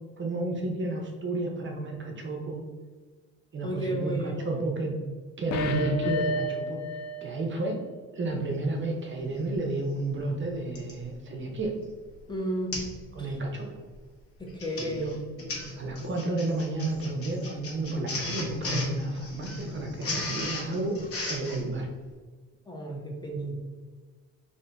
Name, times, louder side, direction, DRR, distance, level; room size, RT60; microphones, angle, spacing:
voice 1, 0.2-2.6 3.5-4.9 5.4-6.8 7.2-7.8 8.1-11.7 13.1-13.7 14.8-15.2 15.8-20.9 21.3-21.9, right 2 dB, 40° right, 1 dB, 0.6 m, -31 dB
voice 2, 3.6-4.6 12.3-12.8 13.2-13.3 14.4-15.1 22.7-23.6, equal, 15° left, -1 dB, 0.7 m, -33 dB
sound 1, 5.5-7.3 7.7-7.8, left 1 dB, 65° left, 0.5 m, -31 dB
Printer, 9.6-9.7 10.7-11.0 11.6-11.8 12.1-12.2 12.7-13.0 13.3-13.6 14.4-21.6, left 2 dB, 50° left, 1.1 m, -35 dB
2.7 x 2.7 x 3.3 m, 1.4 s
cardioid pair, 90°, 30 cm